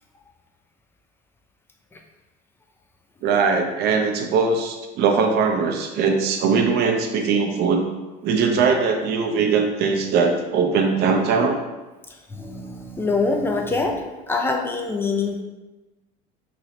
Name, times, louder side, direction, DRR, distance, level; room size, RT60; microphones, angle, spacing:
voice 1, 3.2-7.8 8.2-11.6, right 5 dB, 55° right, 3 dB, 0.6 m, -20 dB
voice 2, 12.3-14.0 14.3-15.4, left 3 dB, 10° left, 2 dB, 0.5 m, -24 dB
3.1 x 2.7 x 4.1 m, 1.1 s
cardioid pair, 120°, 20 cm